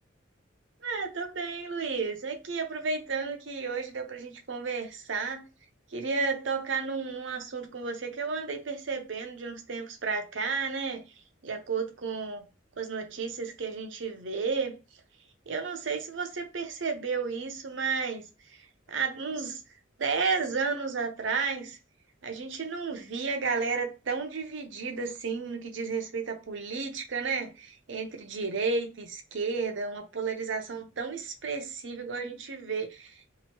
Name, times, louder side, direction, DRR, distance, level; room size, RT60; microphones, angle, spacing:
voice 1, 0.8-5.4 5.9-11.0 11.4-12.4 12.8-14.7 15.5-18.3 18.5-19.6 20.0-21.8 22.2-33.2, right 4 dB, 70° right, 0.7 m, -32 dB
2.9 x 2.6 x 2.9 m
head